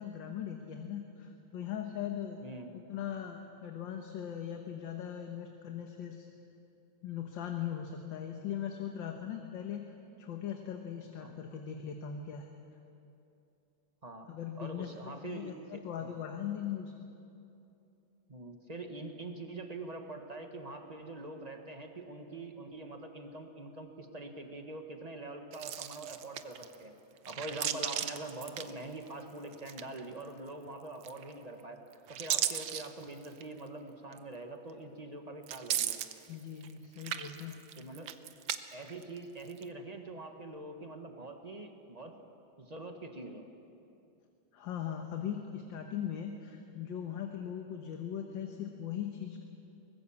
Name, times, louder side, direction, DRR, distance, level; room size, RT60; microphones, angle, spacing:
voice 1, 0.0-2.4 2.9-6.3 7.0-9.9 10.2-12.5 14.3-14.9 15.2-16.9 36.3-37.6 44.5-49.4, left 9 dB, 65° left, 3 dB, 1.9 m, -39 dB
voice 2, 2.4-2.8 11.2-11.3 14.0-14.3 14.6-16.1 18.3-26.9 27.3-31.8 32.1-36.0 37.8-38.2 38.7-42.1 42.6-43.4, right 2 dB, 20° right, 4 dB, 1.3 m, -44 dB
sound 1, 25.5-26.8 27.2-29.2 29.5-30.2 31.0-31.5 31.9-33.5 34.1-34.2 35.4-36.7 37.0-38.6 38.9-39.6, right 11 dB, 80° right, 1.6 m, -36 dB
23.5 x 19.5 x 7.2 m, 2.7 s
omnidirectional pair, 2.2 m